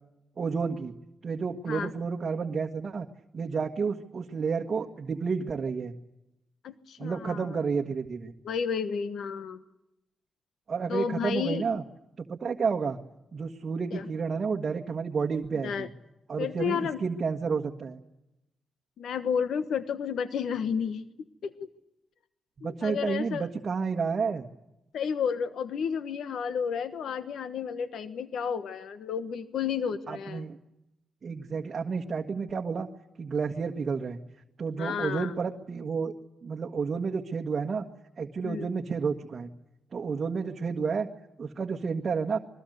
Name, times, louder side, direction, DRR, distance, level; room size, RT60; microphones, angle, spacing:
voice 1, 0.4-0.9 1.2-3.1 3.3-5.9 7.0-8.3 10.7-11.8 12.2-13.0 13.3-15.9 16.3-18.0 22.6-24.5 30.1-30.6 31.2-32.9 33.2-34.2 34.6-36.1 36.4-37.9 38.2-39.5 39.9-41.1 41.4-42.4, right 5 dB, 45° right, 3 dB, 1.6 m, -30 dB
voice 2, 6.6-7.6 8.4-9.6 10.9-11.6 13.9-14.1 15.6-15.9 16.4-17.0 19.0-21.0 21.4-21.5 22.6-23.5 24.9-30.5 34.8-35.3 38.4-38.7, left 7 dB, 80° left, 11 dB, 1.3 m, -31 dB
27.0 x 22.5 x 8.0 m, 0.91 s
cardioid pair, 105°, 0 cm